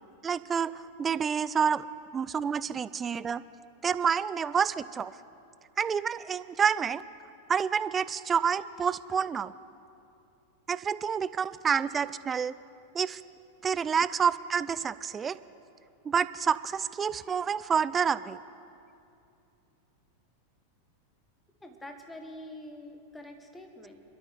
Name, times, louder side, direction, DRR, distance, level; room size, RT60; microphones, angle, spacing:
voice 1, 0.2-1.8 2.1-3.4 3.8-5.1 5.8-7.0 7.5-9.5 10.7-12.6 12.9-13.2 13.6-15.4 16.0-18.4, right 7 dB, 20° right, 17 dB, 0.4 m, -28 dB
voice 2, 21.6-24.0, left 1 dB, 5° left, 5 dB, 1.5 m, -45 dB
26.0 x 13.0 x 3.4 m, 2.7 s
figure-of-eight pair, 90°, 0 cm